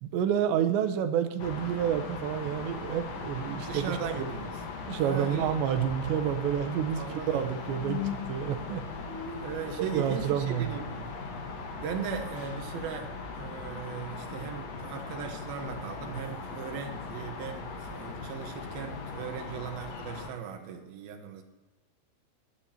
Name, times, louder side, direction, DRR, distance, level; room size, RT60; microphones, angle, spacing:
voice 1, 0.0-4.3 4.9-8.8 9.8-10.8, right 9 dB, 85° right, 8 dB, 3.1 m, -29 dB
sound 1, 1.4-20.3, left 4 dB, 65° left, 1.7 m, -39 dB
voice 2, 3.6-4.6 5.0-5.6 6.9-7.5 9.4-11.1 11.7-21.4, right 7 dB, 70° right, 4 dB, 2.8 m, -38 dB
sound 2, 5.8-14.9, left 6 dB, 25° left, 4.1 m, -43 dB
19.0 x 11.0 x 2.9 m, 1.2 s
omnidirectional pair, 5.0 m